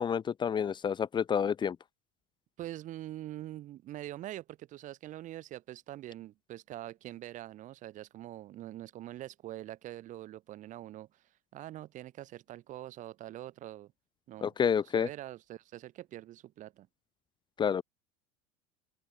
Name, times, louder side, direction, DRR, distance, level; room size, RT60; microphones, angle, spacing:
voice 1, 0.0-1.8 14.4-15.1 17.6-17.8, left 7 dB, 25° left, 1.5 m, -29 dB
voice 2, 2.6-11.2 11.5-13.9 14.3-14.5 14.9-16.9, right 14 dB, 45° right, 6.0 m, -44 dB
open air
supercardioid pair, 120°, 18 cm